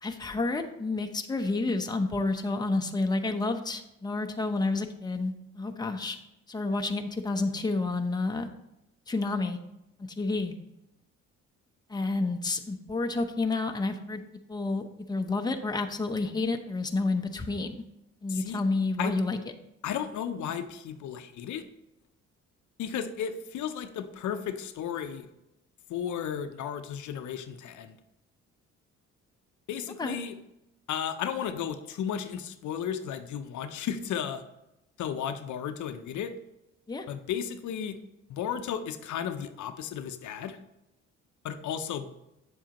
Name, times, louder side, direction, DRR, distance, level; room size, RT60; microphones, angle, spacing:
voice 1, 0.0-6.2 6.5-8.5 9.1-9.6 10.0-10.5 11.9-14.2 14.5-17.8 18.2-19.4 30.0-30.2 36.9-37.1, left 3 dB, 15° left, 5 dB, 0.7 m, -30 dB
voice 2, 18.3-18.6 19.0-19.2 19.8-21.6 22.8-25.3 25.9-28.0 29.7-30.4 30.9-34.4 35.0-36.3 37.1-38.0 38.3-40.6 41.4-42.1, left 8 dB, 75° left, 9 dB, 0.7 m, -34 dB
8.1 x 7.3 x 2.9 m, 0.88 s
cardioid pair, 90°, 30 cm